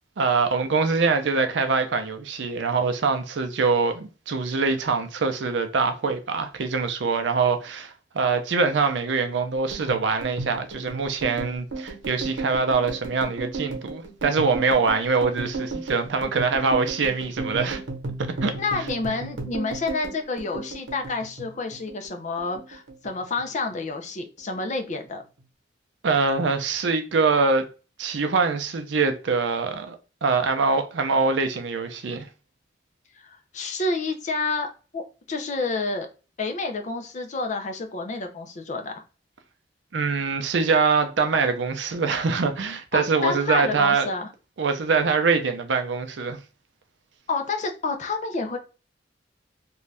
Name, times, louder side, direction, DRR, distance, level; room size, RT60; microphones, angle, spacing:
voice 1, 0.2-17.8 18.4-18.5 26.0-27.7 28.0-32.3 39.9-44.1 44.6-46.4, right 4 dB, 70° right, 0.5 m, -24 dB
sound 1, 9.7-22.1 22.4-23.4 23.7-24.1 24.4-25.1, right 3 dB, 85° right, 1.0 m, -34 dB
voice 2, 18.6-25.2 33.1-34.7 34.9-35.0 35.3-36.1 36.4-39.0 42.9-44.3 47.3-48.6, left 3 dB, 40° left, 0.5 m, -29 dB
2.6 x 2.3 x 3.2 m
head